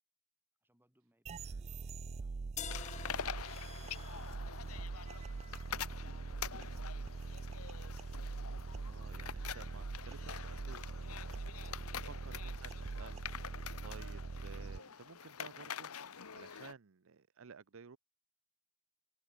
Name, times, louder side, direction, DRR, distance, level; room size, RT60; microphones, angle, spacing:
voice 1, 0.6-2.3 11.8-12.2, right 1 dB, 10° right, 7.8 m, -74 dB
sound 1, 1.3-14.8, right 4 dB, 30° right, 0.3 m, -43 dB
sound 2, 2.6-8.5, left 8 dB, 35° left, 0.8 m, -52 dB
sound 3, 2.7-16.7, left 7 dB, 85° left, 1.1 m, -46 dB
voice 2, 8.5-11.8 12.0-15.9 16.3-18.0, right 5 dB, 65° right, 0.6 m, -55 dB
head